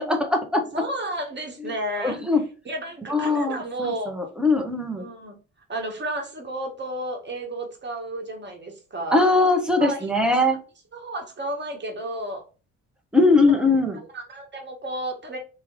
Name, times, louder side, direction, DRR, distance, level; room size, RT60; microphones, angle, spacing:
voice 1, 0.1-0.6 2.0-2.4 3.1-5.0 9.1-10.6 13.1-14.0, left 2 dB, ahead, 3 dB, 1.0 m, -21 dB
voice 2, 0.7-2.2 2.6-4.1 5.0-5.4 5.7-9.3 9.8-10.1 10.3-10.4 10.9-12.4 13.9-15.4, right 1 dB, 25° right, 2 dB, 1.4 m, -32 dB
3.4 x 3.0 x 3.6 m, 0.34 s
figure-of-eight pair, 40°, 40 cm